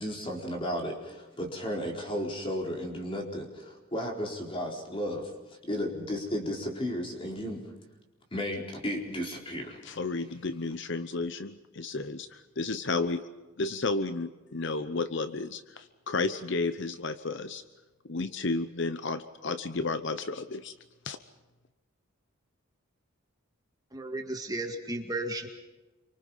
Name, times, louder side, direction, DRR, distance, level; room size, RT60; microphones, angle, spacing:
voice 1, 0.0-5.3 5.6-7.6 8.3-9.8, equal, 25° left, 0 dB, 4.3 m, -34 dB
voice 2, 9.8-13.3 13.6-17.6 18.0-20.7 21.0-21.2, left 3 dB, 55° left, 11 dB, 0.8 m, -32 dB
voice 3, 23.9-25.5, right 2 dB, 20° right, 3 dB, 2.0 m, -34 dB
27.5 x 25.0 x 5.7 m, 1.2 s
head